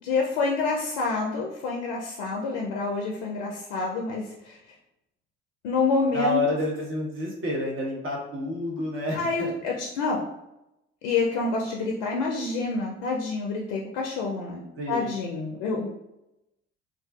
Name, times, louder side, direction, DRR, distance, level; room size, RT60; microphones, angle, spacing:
voice 1, 0.0-4.6 5.6-6.4 9.1-10.3 11.0-15.9, left 3 dB, 70° left, 0 dB, 0.5 m, -28 dB
voice 2, 6.1-9.5 14.8-15.1, left 1 dB, 35° right, -2 dB, 1.0 m, -29 dB
2.4 x 2.3 x 2.3 m, 0.89 s
hypercardioid pair, 55°, 35 cm